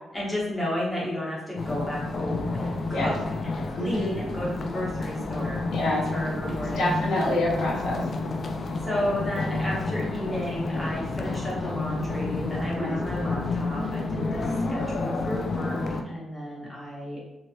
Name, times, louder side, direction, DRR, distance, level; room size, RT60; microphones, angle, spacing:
voice 1, 0.1-5.6 5.9-6.9 8.8-15.8 16.0-17.3, equal, 5° left, -6 dB, 1.1 m, -32 dB
sound 1, 1.6-16.0, left 3 dB, 45° left, 0.3 m, -30 dB
voice 2, 3.8-4.2 5.7-6.0 6.8-8.0 12.8-12.9, left 1 dB, 75° left, -3 dB, 0.7 m, -27 dB
3.1 x 2.7 x 2.6 m, 1.0 s
cardioid pair, 130°, 0 cm